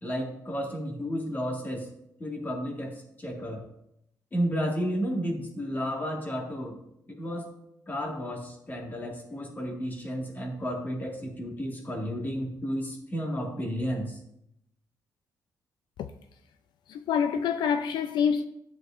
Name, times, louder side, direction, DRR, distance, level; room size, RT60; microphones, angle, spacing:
voice 1, 0.0-1.9 2.2-3.7 4.3-6.8 7.1-7.5 7.9-14.2, equal, 25° left, 1.8 m, -32 dB
voice 2, 16.9-18.4, left 7 dB, 85° left, 0.4 m, -26 dB
12.5 x 8.0 x 2.5 m
cardioid pair, 145°, 7 cm